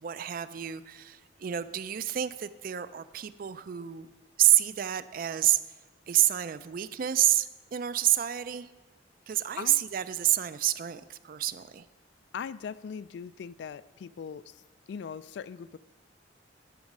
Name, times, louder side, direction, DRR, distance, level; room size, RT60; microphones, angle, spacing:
voice 1, 0.0-4.1 4.4-5.7 6.1-8.7 9.3-11.9, right 13 dB, 50° right, 15 dB, 0.4 m, -28 dB
voice 2, 9.4-9.8 12.3-14.6 14.9-15.8, left 6 dB, 65° left, 17 dB, 0.3 m, -40 dB
10.5 x 6.2 x 6.0 m, 1.2 s
head